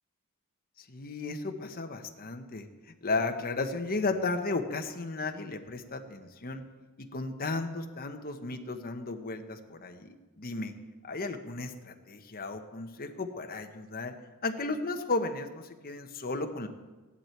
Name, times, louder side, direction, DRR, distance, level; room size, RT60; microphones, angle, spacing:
voice 1, 0.9-2.7 3.0-6.6 7.0-10.1 10.4-10.7 11.0-14.1 14.4-16.7, left 3 dB, 40° left, 6 dB, 1.1 m, -34 dB
16.0 x 11.5 x 4.5 m, 1.3 s
head